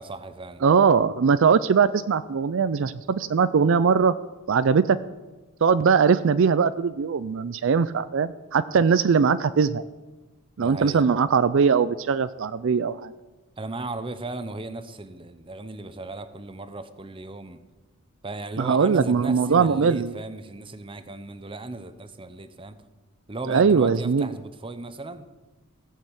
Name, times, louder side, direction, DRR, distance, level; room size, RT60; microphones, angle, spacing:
voice 1, 0.0-0.7 10.6-11.1 13.6-17.6 18.2-22.8 23.3-25.3, right 2 dB, 25° right, 11 dB, 0.8 m, -36 dB
voice 2, 0.6-4.1 4.5-5.0 5.6-9.8 10.6-13.1 18.6-20.1 23.5-24.3, right 5 dB, 65° right, 13 dB, 0.4 m, -20 dB
16.5 x 6.5 x 8.1 m, 1.2 s
head